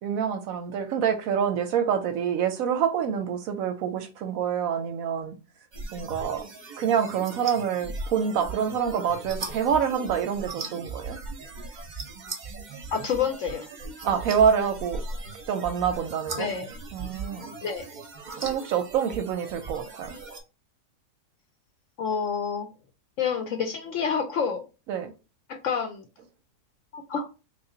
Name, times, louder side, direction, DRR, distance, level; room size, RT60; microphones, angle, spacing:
voice 1, 0.0-5.4 5.9-6.4 6.8-11.2 14.0-15.0 15.5-16.5 16.9-17.5 18.4-20.2 24.9-25.1, right 7 dB, 70° right, 0.9 m, -26 dB
sound 1, 5.7-20.4, right 3 dB, 40° right, 0.6 m, -38 dB
voice 2, 12.9-13.6 16.4-16.7 17.6-17.9 22.0-22.7 23.2-24.6 25.5-26.1 26.9-27.3, left 6 dB, 70° left, 0.8 m, -28 dB
3.3 x 2.4 x 3.7 m
omnidirectional pair, 1.7 m